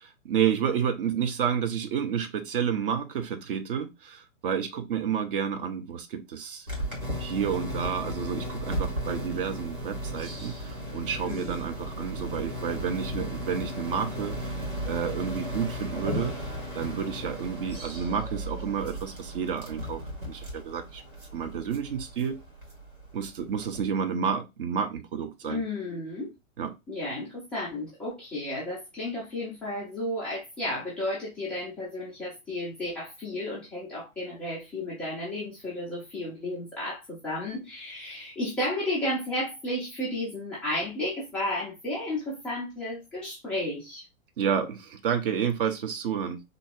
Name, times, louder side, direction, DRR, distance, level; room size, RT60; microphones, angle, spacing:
voice 1, 0.0-6.7 7.2-14.6 14.8-16.4 16.7-21.0 21.3-22.4 23.1-25.6 26.6-26.7 44.4-46.4, right 7 dB, 40° right, 0.8 m, -30 dB
sound 1, 6.7-23.9, equal, 85° right, 2.4 m, -35 dB
voice 2, 11.2-11.6 25.4-26.3 26.9-44.0, left 1 dB, 5° left, 0.4 m, -33 dB
3.8 x 2.9 x 3.6 m
figure-of-eight pair, 110°, 41 cm